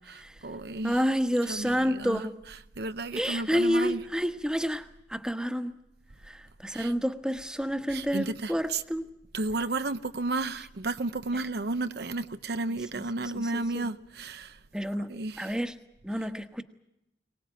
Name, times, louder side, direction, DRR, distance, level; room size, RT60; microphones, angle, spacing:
voice 1, 0.1-1.0 1.5-2.3 2.8-4.0 6.7-6.9 7.9-8.8 9.3-14.6 15.1-15.6 16.2-16.3, right 2 dB, 60° right, 0.8 m, -33 dB
voice 2, 0.8-2.4 3.1-5.8 6.3-9.0 12.9-13.9 14.7-15.8 16.0-16.6, equal, 5° right, 1.3 m, -29 dB
24.0 x 19.0 x 9.0 m
head